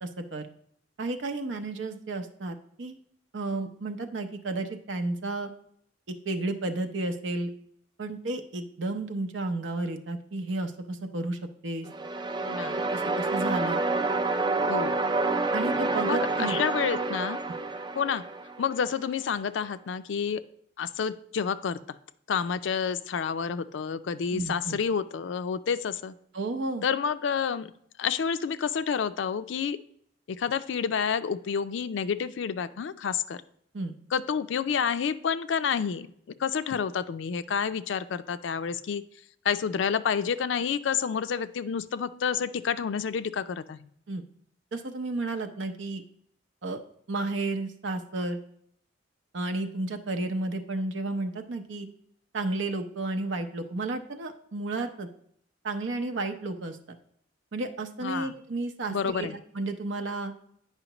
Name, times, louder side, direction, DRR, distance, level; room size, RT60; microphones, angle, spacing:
voice 1, 0.0-0.4 1.0-3.0 3.3-5.5 6.2-7.5 8.0-11.9 12.9-13.8 15.5-16.6 24.3-24.8 26.3-26.8 33.7-33.9 44.1-44.2 44.7-46.0 46.6-46.8 47.1-48.4 49.3-51.9 52.3-55.1 55.6-56.8 57.5-60.3, right 2 dB, 80° right, 6 dB, 0.7 m, -32 dB
sound 1, 11.9-18.9, right 3 dB, 25° right, 0.3 m, -28 dB
voice 2, 12.4-12.8 14.7-15.0 16.0-17.4 18.0-18.2 18.6-20.4 20.8-21.8 22.3-26.1 26.8-27.7 28.0-29.8 30.3-33.4 34.1-36.1 36.4-39.0 39.4-43.9 58.0-58.3 58.9-59.4, left 6 dB, 75° left, 13 dB, 0.4 m, -29 dB
9.0 x 5.6 x 3.0 m, 0.68 s
head